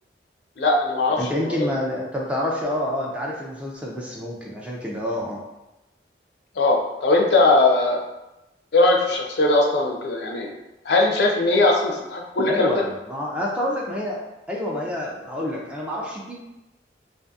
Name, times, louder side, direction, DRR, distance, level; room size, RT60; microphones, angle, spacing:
voice 1, 0.6-1.2 1.4-1.7 6.6-8.0 8.7-10.5 10.8-12.8, left 2 dB, 65° left, 0 dB, 0.4 m, -19 dB
voice 2, 1.2-5.4 12.5-16.3, left 1 dB, 5° right, -3 dB, 0.3 m, -28 dB
2.6 x 2.5 x 2.3 m, 0.97 s
head